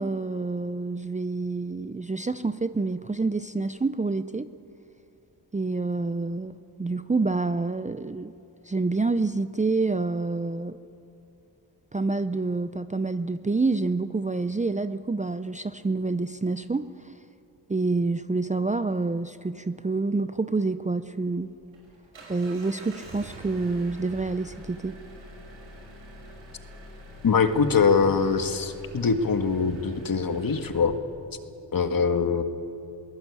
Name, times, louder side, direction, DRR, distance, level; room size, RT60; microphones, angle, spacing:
voice 1, 0.0-4.5 5.5-8.3 8.7-10.8 11.9-16.9 17.7-21.5 22.3-25.0, right 3 dB, 15° right, 12 dB, 0.6 m, -27 dB
Engine, 21.3-30.8, right 1 dB, 80° right, 5.7 m, -45 dB
voice 2, 27.2-31.0 31.7-32.4, left 5 dB, 45° left, 8 dB, 1.7 m, -23 dB
22.5 x 17.0 x 8.5 m, 2.8 s
cardioid pair, 65°, 46 cm